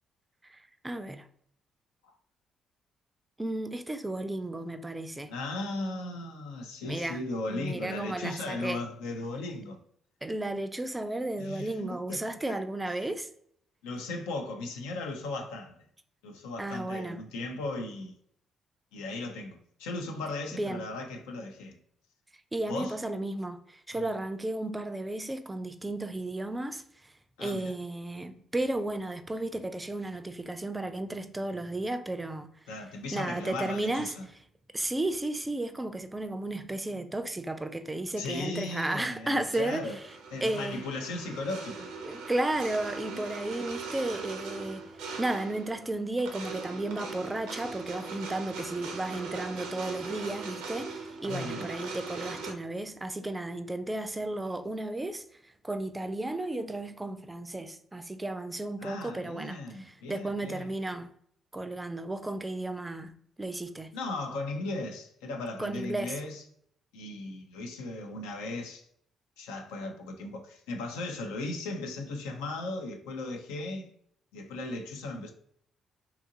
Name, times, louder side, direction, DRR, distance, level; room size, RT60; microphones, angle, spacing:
voice 1, 0.5-1.3 3.4-5.3 6.8-7.2 7.5-8.8 10.2-13.3 16.6-17.2 20.5-20.9 22.5-26.8 27.4-32.5 33.1-34.1 34.7-39.9 40.4-40.9 42.0-44.9 45.2-55.2 55.6-61.1 61.5-63.1 63.4-63.9 65.6-66.1, right 2 dB, 20° right, 0.3 m, -33 dB
voice 2, 5.3-9.8 11.4-12.6 13.8-15.8 16.2-18.1 18.9-21.8 22.7-23.0 23.9-24.1 27.4-27.7 32.7-34.3 38.2-40.0 40.3-41.9 43.1-43.2 51.2-51.7 58.8-60.7 63.9-66.4 66.9-68.8 69.4-73.9 74.3-75.3, left 2 dB, 85° left, 0.4 m, -37 dB
sound 1, 39.5-52.5, right 4 dB, 80° right, 0.4 m, -40 dB
2.8 x 2.4 x 2.6 m
hypercardioid pair, 50°, 0 cm